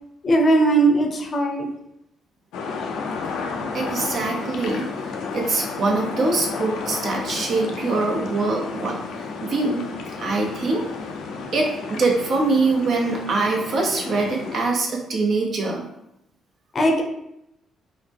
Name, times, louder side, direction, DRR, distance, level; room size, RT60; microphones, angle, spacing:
voice 1, 0.2-1.7 16.7-17.0, right 2 dB, 40° left, 2 dB, 0.6 m, -18 dB
sound 1, 2.5-14.7, left 4 dB, 85° left, 0.5 m, -32 dB
voice 2, 3.7-4.9 5.3-9.0 9.4-9.9 10.2-10.8 11.5-15.8, right 3 dB, 55° right, 0 dB, 0.8 m, -23 dB
3.7 x 2.1 x 3.4 m, 0.83 s
cardioid pair, 90°, 0 cm